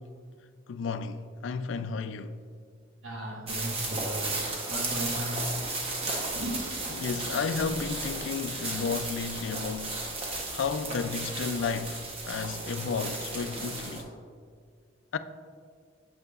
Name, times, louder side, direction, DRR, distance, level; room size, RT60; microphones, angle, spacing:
voice 1, 0.7-2.4 6.9-10.0 10.5-14.1 15.1-15.2, left 5 dB, 75° left, 0.4 m, -32 dB
voice 2, 3.0-4.4 4.7-5.4 6.3-6.6, equal, 75° right, 1.3 m, -35 dB
sound 1, 3.5-14.0, right 2 dB, 30° right, 0.9 m, -34 dB
8.0 x 7.0 x 2.4 m
head